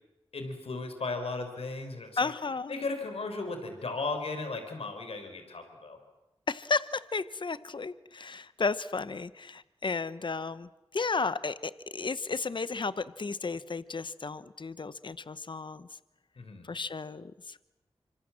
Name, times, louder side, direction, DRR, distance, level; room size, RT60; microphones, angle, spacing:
voice 1, 0.3-2.3 2.7-6.0 16.4-16.7, left 3 dB, 75° left, 6 dB, 4.6 m, -36 dB
voice 2, 2.2-2.7 6.5-15.9 16.6-17.6, left 4 dB, 50° left, 15 dB, 0.9 m, -33 dB
25.5 x 25.0 x 7.5 m, 0.99 s
cardioid pair, 45°, 10 cm